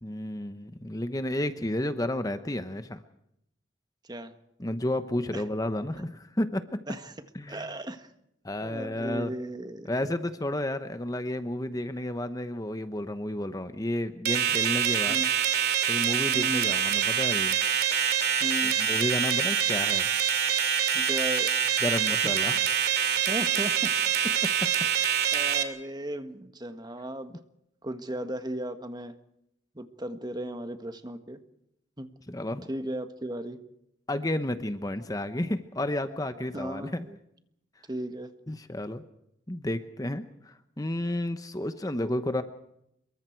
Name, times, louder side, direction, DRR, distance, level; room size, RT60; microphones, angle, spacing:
voice 1, 0.0-3.0 4.6-6.8 7.3-7.7 8.4-9.3 9.9-15.2 15.9-17.6 18.8-20.1 21.8-22.6 24.4-24.7 32.3-32.7 34.1-37.1 38.5-39.0 39.5-42.4, left 1 dB, 20° left, 10 dB, 1.0 m, -31 dB
voice 2, 7.5-8.1 8.6-9.9 15.1-15.3 16.3-16.6 18.4-18.8 20.9-21.5 23.3-23.9 24.7-25.0 25.3-27.3 27.8-29.2 29.8-31.4 32.0-32.1 32.7-33.6 36.5-37.2 37.9-38.3, right 1 dB, 20° right, 8 dB, 1.6 m, -36 dB
sound 1, 14.2-25.6, right 8 dB, 60° right, 2.6 m, -25 dB
27.0 x 23.5 x 4.7 m, 0.79 s
head